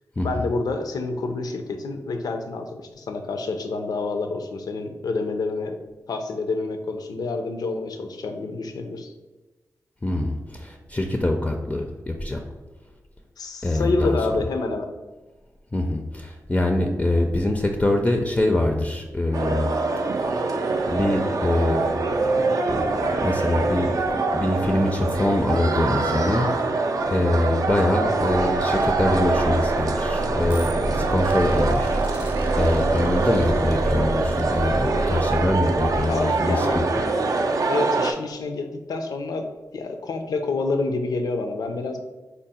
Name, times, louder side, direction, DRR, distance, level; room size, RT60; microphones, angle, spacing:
voice 1, 0.2-5.8 6.1-9.1 13.4-14.9 36.1-36.8 37.7-39.5 39.7-42.0, left 3 dB, 80° left, 6 dB, 0.4 m, -28 dB
voice 2, 10.0-12.4 13.6-14.2 15.7-19.7 20.9-21.9 22.7-26.5 27.1-32.0 32.6-36.9, left 1 dB, 20° left, 3 dB, 0.4 m, -24 dB
sound 1, 19.3-38.1, right 3 dB, 65° right, 0.3 m, -24 dB
sound 2, 28.0-36.5, right 2 dB, 25° right, 0.6 m, -30 dB
3.7 x 2.0 x 4.0 m, 1.2 s
cardioid pair, 55°, 7 cm